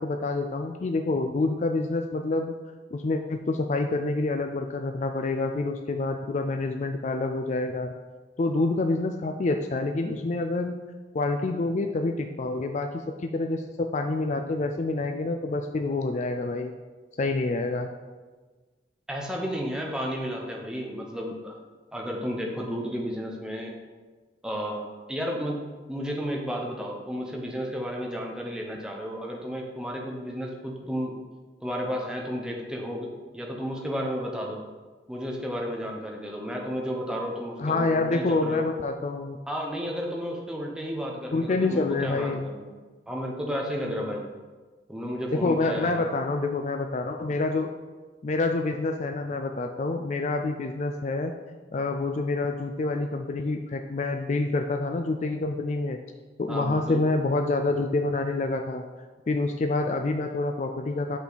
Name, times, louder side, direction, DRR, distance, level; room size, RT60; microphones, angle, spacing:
voice 1, 0.0-2.5 2.9-7.9 8.4-10.8 11.1-16.7 17.2-17.9 37.6-39.4 41.3-42.5 45.3-47.7 48.2-51.3 51.7-56.0 56.4-58.8 59.3-61.2, left 3 dB, 40° left, 5 dB, 0.3 m, -27 dB
voice 2, 19.1-21.6 21.9-23.7 24.4-31.2 31.6-33.1 33.3-34.6 35.1-38.7 39.5-42.7 43.1-44.2 44.9-46.0 56.5-57.0, equal, 5° right, -1 dB, 0.8 m, -32 dB
6.4 x 5.7 x 4.0 m, 1.3 s
head